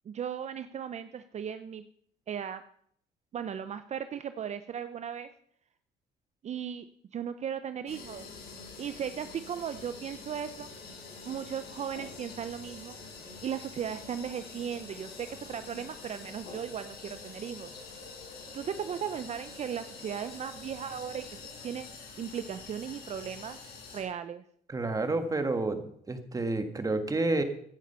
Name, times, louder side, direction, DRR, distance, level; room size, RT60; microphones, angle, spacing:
voice 1, 0.1-1.8 2.3-2.6 3.3-5.3 6.4-6.9 7.1-8.3 8.8-10.7 11.3-13.0 13.4-17.7 18.5-21.2 21.6-21.9 22.2-23.6 23.9-24.4, right 8 dB, 40° right, 11 dB, 0.7 m, -36 dB
sound 1, 7.9-24.0, left 4 dB, 70° left, 5.7 m, -46 dB
voice 2, 24.7-27.4, right 2 dB, 20° right, 8 dB, 1.7 m, -30 dB
15.5 x 10.5 x 5.6 m, 0.66 s
cardioid pair, 110°, 17 cm